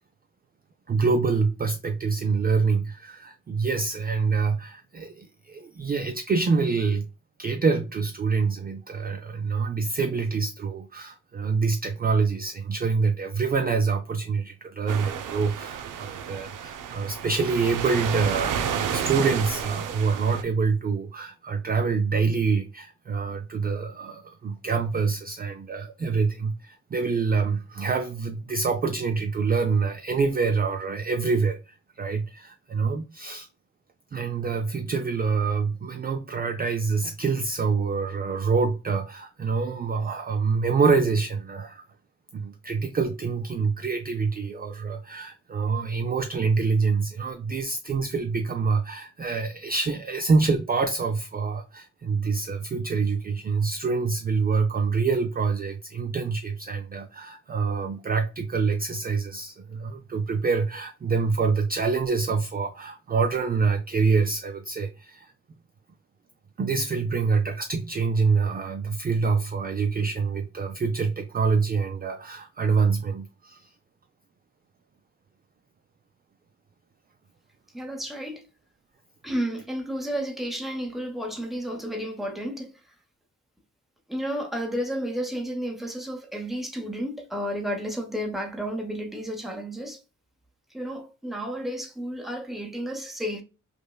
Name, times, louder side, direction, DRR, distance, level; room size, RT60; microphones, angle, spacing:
voice 1, 0.9-7.1 7.4-33.5 34.1-41.8 42.3-65.3 66.6-73.7, right 4 dB, 30° right, 0.4 m, -26 dB
sound 1, 14.9-20.4, right 8 dB, 80° right, 0.5 m, -31 dB
voice 2, 77.7-78.4 79.2-82.7 84.1-90.0 90.7-93.4, equal, ahead, 0.8 m, -32 dB
5.2 x 2.1 x 2.2 m
wide cardioid pair, 100°, 31 cm